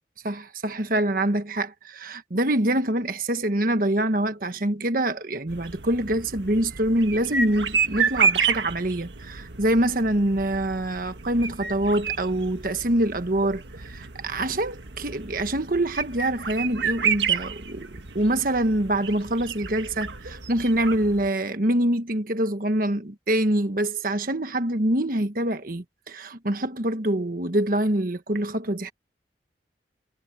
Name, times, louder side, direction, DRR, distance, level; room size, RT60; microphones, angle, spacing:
voice 1, 0.2-17.9 18.1-28.9, right 1 dB, 55° right, 1.4 m, -25 dB
sound 1, 5.5-21.3, right 6 dB, 85° right, 1.7 m, -30 dB
head